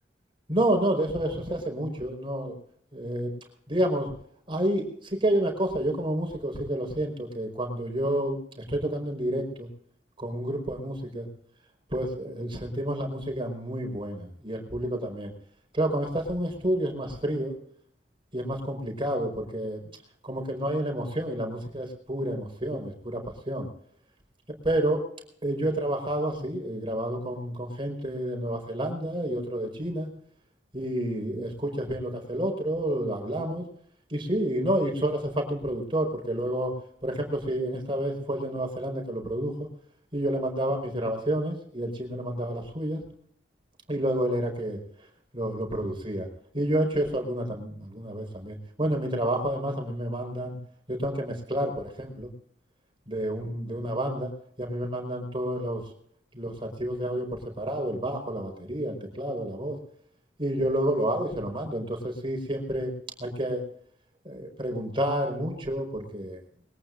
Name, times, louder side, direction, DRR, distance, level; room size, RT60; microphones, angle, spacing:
voice 1, 0.5-2.6 2.9-3.3 3.7-4.1 4.5-9.7 10.2-11.3 11.9-15.3 15.7-17.5 18.3-19.8 20.2-23.7 24.6-25.0 25.4-30.1 30.7-33.6 34.1-36.7 37.0-39.7 40.1-43.0 43.9-44.8 45.3-46.3 46.5-50.6 50.9-52.3 53.1-54.3 54.6-55.9 56.3-59.8 60.4-62.9 63.2-63.6 64.2-66.4, right 1 dB, 30° right, 3 dB, 4.9 m, -29 dB
22.5 x 19.0 x 2.6 m, 0.65 s
head